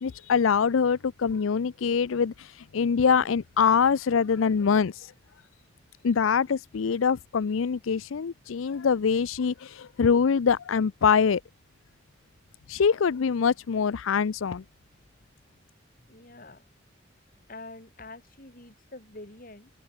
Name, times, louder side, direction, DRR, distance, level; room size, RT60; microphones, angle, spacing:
voice 1, 0.0-5.1 6.0-11.4 12.7-14.6, left 6 dB, 80° left, 0.5 m, -24 dB
voice 2, 16.0-16.6 17.5-19.7, left 2 dB, 45° left, 3.2 m, -46 dB
open air
head